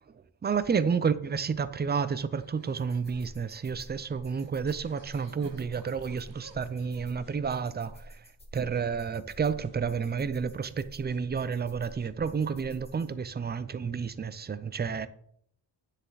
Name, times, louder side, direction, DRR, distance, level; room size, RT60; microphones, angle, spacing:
voice 1, 0.4-8.2 8.5-15.1, right 6 dB, 25° right, 0.4 m, -30 dB
sound 1, 2.0-7.1, right 4 dB, 65° right, 1.2 m, -57 dB
sound 2, 2.8-13.1, equal, 10° left, 1.7 m, -50 dB
sound 3, 4.7-7.4, right 5 dB, 45° right, 0.9 m, -54 dB
9.9 x 6.6 x 4.0 m
wide cardioid pair, 170°, 48 cm